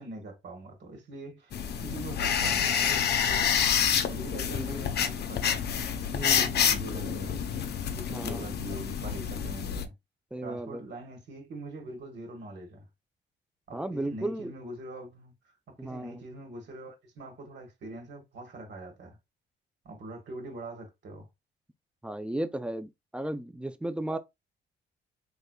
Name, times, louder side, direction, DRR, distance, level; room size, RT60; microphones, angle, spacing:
voice 1, 0.0-1.6 1.8-5.7 6.2-7.4 8.0-9.9 10.4-12.8 13.7-15.3 15.7-19.2 19.8-21.3, right 2 dB, 60° right, 1.7 m, -43 dB
sound 1, 1.5-9.9, left 8 dB, 55° left, 0.6 m, -28 dB
voice 2, 4.5-4.8 6.1-6.5 8.1-8.5 10.3-10.8 13.7-14.5 15.8-16.2 22.0-24.2, right 1 dB, 5° right, 0.4 m, -35 dB
3.5 x 3.2 x 2.2 m
cardioid pair, 90°, 20 cm